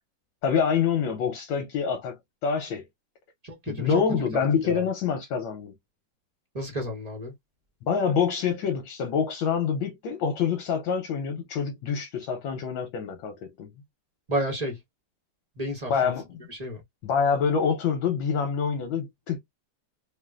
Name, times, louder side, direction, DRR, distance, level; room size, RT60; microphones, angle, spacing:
voice 1, 0.4-2.2 2.4-2.8 3.7-5.8 7.8-13.7 15.9-16.2 17.0-19.4, left 6 dB, 70° left, 1.3 m, -26 dB
voice 2, 3.4-4.8 6.5-7.3 14.3-14.8 15.6-15.9 16.5-16.8, equal, 25° right, 0.8 m, -32 dB
3.5 x 2.5 x 2.3 m
omnidirectional pair, 2.4 m